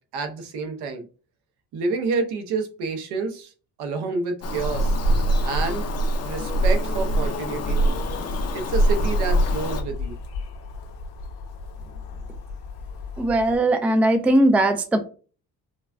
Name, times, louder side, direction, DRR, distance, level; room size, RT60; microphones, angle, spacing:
voice 1, 0.1-1.0 1.7-3.5 3.8-5.0 5.4-5.8 6.2-8.0 8.5-10.1, right 4 dB, 80° right, 5 dB, 1.0 m, -29 dB
Bird vocalization bird call bird song, 4.4-9.8, right 1 dB, 40° left, 0.6 m, -23 dB
sound 1, 7.7-13.6, left 4 dB, 75° left, 1.2 m, -37 dB
voice 2, 13.2-15.0, right 1 dB, 5° right, 8 dB, 0.3 m, -19 dB
5.2 x 2.2 x 2.6 m, 0.37 s
cardioid pair, 125°, 39 cm